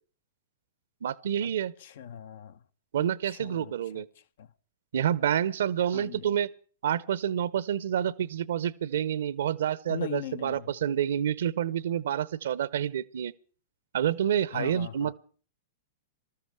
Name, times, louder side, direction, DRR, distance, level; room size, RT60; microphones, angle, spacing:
voice 1, 1.0-1.7 2.9-4.1 4.9-6.5 6.8-13.3 13.9-15.2, right 9 dB, 70° right, 0.7 m, -28 dB
voice 2, 1.8-2.6 2.9-4.5 5.9-6.4 9.9-10.7 14.5-15.1, left 9 dB, 65° left, 0.7 m, -40 dB
20.0 x 13.5 x 4.7 m
hypercardioid pair, 110°, 0 cm